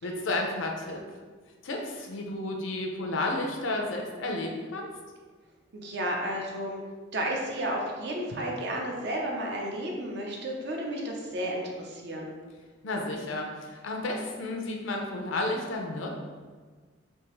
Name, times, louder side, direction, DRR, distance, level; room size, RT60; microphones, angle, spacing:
voice 1, 0.0-1.0 1.6-4.9 12.8-16.1, left 2 dB, 75° left, 1 dB, 0.5 m, -32 dB
voice 2, 5.8-6.8 7.1-12.3, right 1 dB, 55° right, 0 dB, 0.6 m, -32 dB
3.5 x 2.7 x 3.0 m, 1.5 s
head